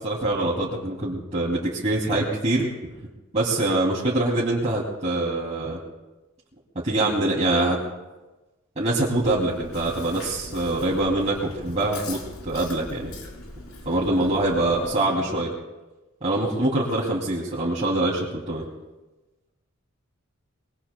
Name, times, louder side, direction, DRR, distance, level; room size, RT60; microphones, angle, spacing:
voice 1, 0.0-2.7 3.3-5.8 6.8-7.8 8.8-13.1 13.8-15.5 16.2-18.6, right 2 dB, 35° right, -6 dB, 2.6 m, -24 dB
Chewing mastication, 9.1-14.9, left 2 dB, 80° left, 4.2 m, -41 dB
voice 2, 14.6-15.3, left 2 dB, 25° left, -5 dB, 7.2 m, -37 dB
25.5 x 22.0 x 2.2 m, 1.1 s
head